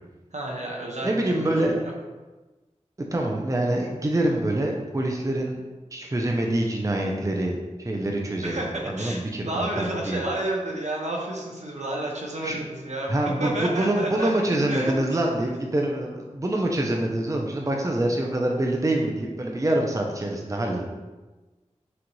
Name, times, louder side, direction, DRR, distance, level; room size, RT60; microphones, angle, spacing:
voice 1, 0.3-1.8 8.4-14.3 14.7-14.9 16.3-16.4, right 1 dB, 70° right, -1 dB, 0.9 m, -31 dB
voice 2, 1.0-1.8 3.1-5.6 5.9-8.5 8.9-10.2 12.4-12.6 13.1-20.9, right 1 dB, 25° right, 0 dB, 0.6 m, -25 dB
6.0 x 2.5 x 3.1 m, 1.2 s
wide cardioid pair, 40°, 13 cm